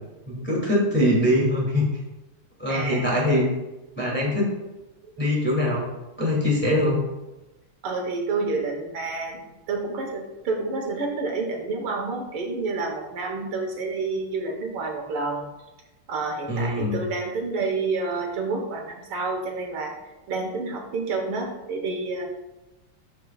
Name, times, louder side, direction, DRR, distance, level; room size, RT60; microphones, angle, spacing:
voice 1, 0.3-1.8 2.6-3.5 4.0-4.5 5.2-5.9 6.2-7.0 16.5-17.0, left 1 dB, 5° left, -5 dB, 2.2 m, -22 dB
voice 2, 2.7-3.1 5.0-5.1 7.8-15.4 16.1-19.9 20.3-22.2, right 3 dB, 80° right, 1 dB, 2.1 m, -29 dB
13.5 x 4.6 x 2.4 m, 1.0 s
omnidirectional pair, 2.3 m